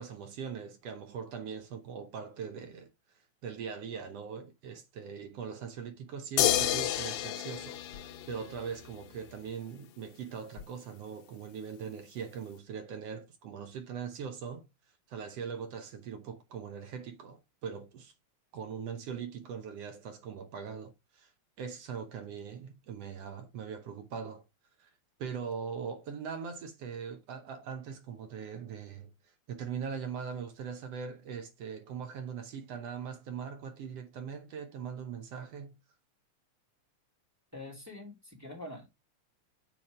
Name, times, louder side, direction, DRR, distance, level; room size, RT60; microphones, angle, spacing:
voice 1, 0.0-2.9 3.4-14.6 15.1-18.1 18.5-21.3 21.6-24.4 24.8-24.9 25.2-29.1 29.5-35.8, right 6 dB, 65° right, 1.8 m, -41 dB
sound 1, 6.4-8.9 10.6-10.7, left 13 dB, 90° left, 2.2 m, -30 dB
voice 2, 37.5-38.9, left 2 dB, 5° right, 2.3 m, -45 dB
7.2 x 5.0 x 4.9 m
omnidirectional pair, 3.3 m